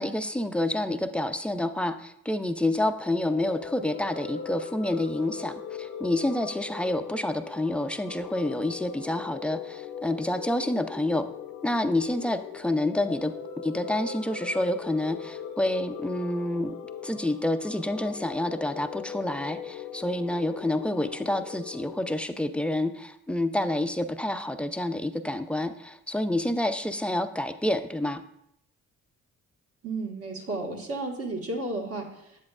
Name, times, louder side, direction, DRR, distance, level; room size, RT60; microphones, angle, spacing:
voice 1, 0.0-11.3 11.6-16.7 17.0-28.2, left 1 dB, 5° left, 9 dB, 0.3 m, -28 dB
sound 1, 2.8-22.2, left 7 dB, 60° left, 0.6 m, -40 dB
voice 2, 29.8-32.1, right 2 dB, 55° right, 0 dB, 1.5 m, -32 dB
7.8 x 7.5 x 2.4 m, 0.76 s
cardioid pair, 90°, 30 cm